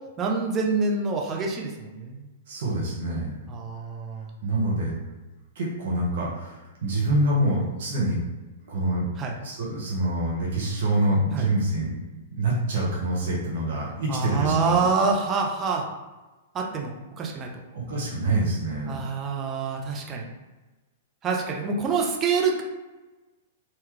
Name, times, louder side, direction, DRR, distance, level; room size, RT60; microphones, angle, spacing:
voice 1, 0.2-2.2 3.5-4.3 9.2-9.3 11.3-11.5 14.1-15.8 16.5-17.5 18.9-20.3 21.2-22.6, right 4 dB, 25° right, -1 dB, 0.7 m, -26 dB
voice 2, 2.5-3.3 4.4-5.0 5.5-8.4 8.7-9.1 9.4-11.9 12.3-14.8 17.7-19.0, right 1 dB, 60° right, -4 dB, 1.2 m, -26 dB
3.8 x 2.8 x 3.3 m, 1.1 s
figure-of-eight pair, 105°, 0 cm